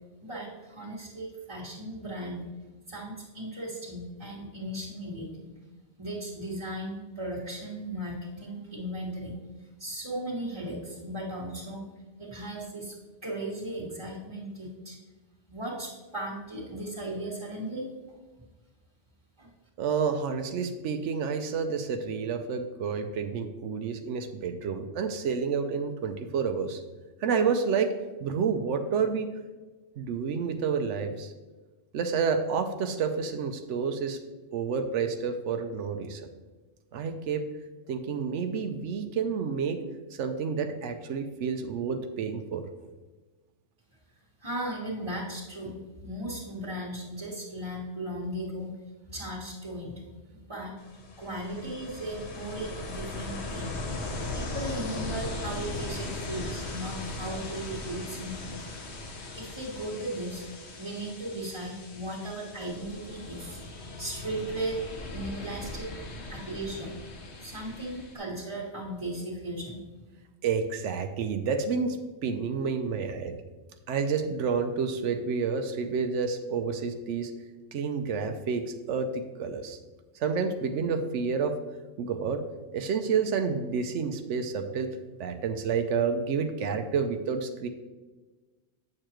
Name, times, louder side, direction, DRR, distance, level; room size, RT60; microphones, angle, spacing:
voice 1, 0.2-2.4 2.9-5.3 6.0-9.3 9.8-11.8 12.2-12.9 13.2-14.9 15.5-17.8 19.4-19.5 44.4-48.7 49.1-50.0 50.5-50.7 51.2-53.8 54.3-58.7 59.4-60.4 60.8-63.6 64.0-64.8 65.1-65.9 66.3-66.9 67.4-69.8, right 1 dB, 20° right, -8 dB, 1.6 m, -36 dB
voice 2, 19.8-26.8 27.2-27.9 28.2-29.3 30.0-31.3 31.9-34.2 34.5-36.2 36.9-37.5 37.9-39.8 40.1-42.6 70.4-72.0 72.2-73.4 73.9-77.3 77.7-79.8 80.2-81.6 82.0-82.4 82.7-84.9 85.2-87.7, right 5 dB, 90° right, 6 dB, 1.0 m, -29 dB
Ocean, 50.8-68.2, left 2 dB, 70° left, 1.2 m, -39 dB
8.6 x 6.7 x 3.0 m, 1.2 s
omnidirectional pair, 1.2 m